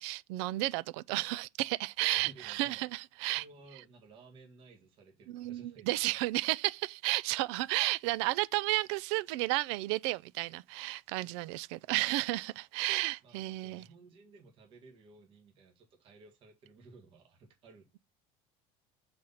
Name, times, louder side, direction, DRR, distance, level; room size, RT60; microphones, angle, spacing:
voice 1, 0.0-3.4 5.3-13.8, right 20 dB, 80° right, 0.4 m, -32 dB
voice 2, 2.1-2.9 3.3-5.9 13.2-18.0, right 3 dB, 40° right, 1.9 m, -57 dB
6.4 x 4.2 x 5.6 m
cardioid pair, 165°, 14 cm